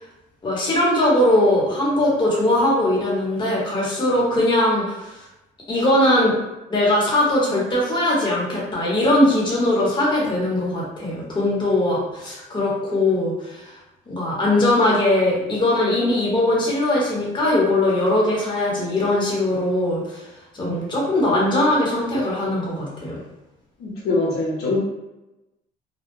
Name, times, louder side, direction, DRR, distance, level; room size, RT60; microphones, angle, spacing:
voice 1, 0.4-5.1 5.7-6.4 6.7-13.7 14.1-20.2 20.5-23.2, left 1 dB, 25° left, -5 dB, 0.9 m, -20 dB
voice 2, 23.8-24.8, left 2 dB, 70° left, -4 dB, 0.7 m, -23 dB
2.2 x 2.1 x 3.0 m, 0.99 s
cardioid pair, 110°, 17 cm